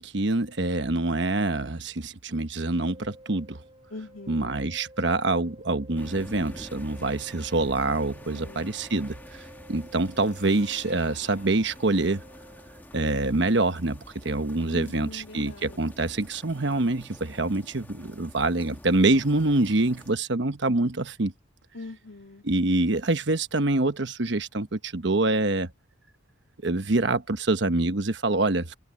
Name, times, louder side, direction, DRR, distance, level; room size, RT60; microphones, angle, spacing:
voice 1, 0.0-3.6 4.3-9.2 9.7-12.2 12.9-21.3 22.4-25.7 26.6-28.7, right 2 dB, 65° right, 1.1 m, -25 dB
Organ, 2.7-13.5, right 1 dB, 30° right, 3.8 m, -51 dB
voice 2, 3.9-4.6 8.3-8.8 14.7-15.8 21.7-22.4, left 2 dB, 85° left, 2.7 m, -42 dB
sound 1, 5.9-20.1, left 1 dB, 10° left, 1.1 m, -48 dB
sound 2, 10.2-17.4, left 4 dB, 40° left, 4.2 m, -57 dB
head